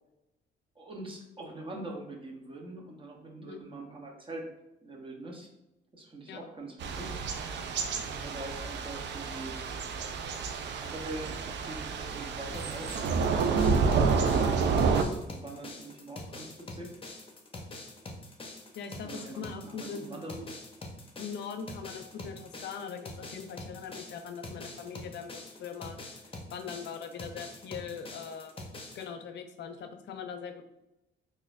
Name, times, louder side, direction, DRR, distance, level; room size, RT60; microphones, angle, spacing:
voice 1, 0.8-4.5 4.8-5.5 5.9-7.2 8.0-9.6 10.8-13.5 13.8-16.9 19.0-20.5, right 2 dB, 25° right, 1 dB, 0.8 m, -43 dB
Thunder / Rain, 6.8-15.0, right 5 dB, 65° right, 0.4 m, -29 dB
sound 1, 12.5-29.0, left 2 dB, 25° left, 0.7 m, -44 dB
voice 2, 18.8-20.2 21.2-26.0 26.5-28.5 28.9-30.6, left 6 dB, 65° left, 8 dB, 0.5 m, -41 dB
3.9 x 2.6 x 2.5 m, 0.91 s
cardioid pair, 90°, 20 cm